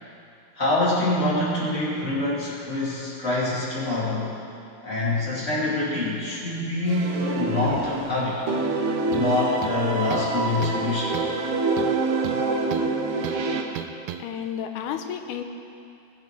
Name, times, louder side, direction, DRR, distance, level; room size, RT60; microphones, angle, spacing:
voice 1, 0.5-4.3 4.8-8.4 9.1-11.2, left 2 dB, 25° left, -8 dB, 3.0 m, -25 dB
sound 1, 6.9-8.1 8.5-13.6, right 3 dB, 65° right, 1.7 m, -26 dB
sound 2, 9.1-9.3 9.6-10.3 10.6-10.9 11.1-11.4 11.8-12.9 13.2-13.4 13.8-14.2, right 12 dB, 80° right, 1.6 m, -35 dB
voice 2, 14.2-15.4, left 9 dB, 90° left, 6 dB, 2.2 m, -31 dB
20.0 x 10.0 x 3.4 m, 2.6 s
omnidirectional pair, 3.5 m